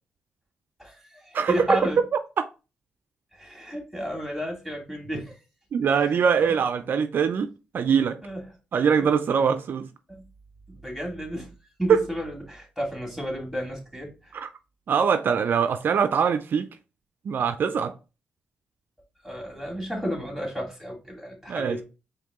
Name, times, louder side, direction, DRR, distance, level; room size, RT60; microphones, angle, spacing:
voice 1, 0.8-2.0 3.3-5.4 5.8-6.5 8.2-8.4 9.0-9.1 10.1-10.2 10.7-11.5 11.8-14.4 19.2-21.8, equal, ahead, 2.2 m, -32 dB
voice 2, 1.3-1.8 2.4-2.5 5.7-7.5 7.7-8.2 8.7-9.9 14.3-14.5 14.9-16.7 17.3-17.9 21.5-21.8, right 6 dB, 65° right, 0.3 m, -23 dB
4.6 x 2.6 x 3.6 m
supercardioid pair, 55°, 4 cm